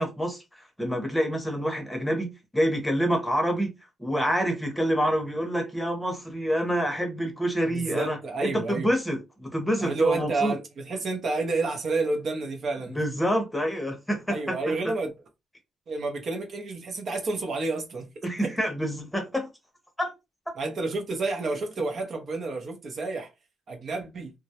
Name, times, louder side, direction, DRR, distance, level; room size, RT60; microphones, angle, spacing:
voice 1, 0.0-3.7 4.0-10.6 12.9-14.6 18.2-19.5 20.0-20.1, equal, 5° left, 0.8 m, -27 dB
voice 2, 7.7-8.9 9.8-13.0 14.3-15.1 15.9-18.1 20.6-23.3 23.7-24.3, right 3 dB, 55° right, 0.6 m, -29 dB
2.2 x 2.0 x 2.7 m
cardioid pair, 90°, 0 cm